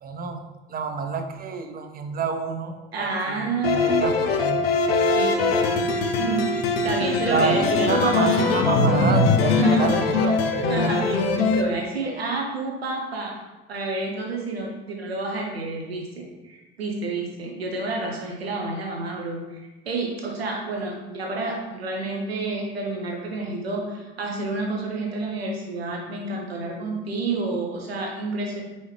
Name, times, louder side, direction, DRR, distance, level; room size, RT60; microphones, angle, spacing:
voice 1, 0.0-3.4 3.6-4.7 7.3-10.5, right 4 dB, 30° right, 6 dB, 0.6 m, -28 dB
voice 2, 2.9-4.0 5.1-5.6 6.2-8.5 9.6-9.9 10.7-13.4 13.7-28.6, right 3 dB, 85° right, 0 dB, 0.6 m, -29 dB
sound 1, 3.6-11.7, left 3 dB, 80° left, 0.5 m, -21 dB
4.7 x 2.8 x 3.1 m, 1.1 s
figure-of-eight pair, 55°, 30 cm